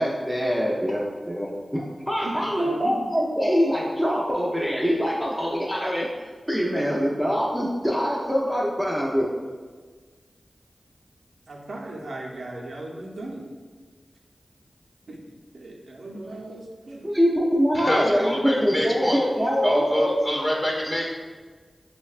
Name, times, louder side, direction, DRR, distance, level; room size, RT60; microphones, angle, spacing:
voice 1, 0.0-6.1 6.5-9.3 17.0-20.1, equal, 5° right, -4 dB, 0.4 m, -24 dB
voice 2, 2.2-3.1 11.5-13.4 15.1-15.2 15.5-17.1 19.3-19.4, right 2 dB, 80° right, -2 dB, 0.5 m, -37 dB
voice 3, 17.7-19.2 19.6-21.1, equal, 30° left, -3 dB, 0.9 m, -26 dB
5.0 x 2.1 x 2.4 m, 1.5 s
cardioid pair, 55°, 0 cm